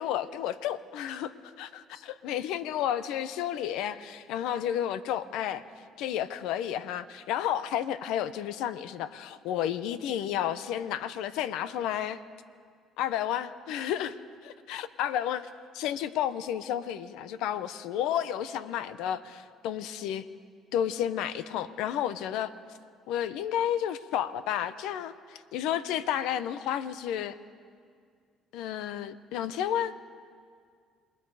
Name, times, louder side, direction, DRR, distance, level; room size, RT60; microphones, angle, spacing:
voice 1, 0.0-5.6 6.0-12.2 13.0-14.2 14.4-15.5 15.7-20.3 20.7-22.5 23.1-27.4 28.5-29.9, left 10 dB, 80° left, 14 dB, 0.8 m, -31 dB
27.5 x 21.0 x 4.9 m, 2.1 s
supercardioid pair, 80°, 0 cm